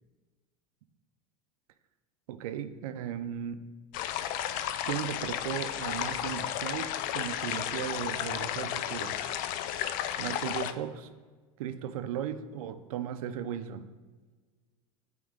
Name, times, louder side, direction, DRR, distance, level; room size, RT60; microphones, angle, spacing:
voice 1, 2.3-3.6 4.9-9.2 10.2-11.1 11.6-13.9, right 9 dB, 80° right, 11 dB, 0.5 m, -36 dB
sound 1, 3.9-10.7, left 11 dB, 50° left, 0.4 m, -33 dB
8.6 x 3.0 x 3.7 m, 1.4 s
hypercardioid pair, 105°, 18 cm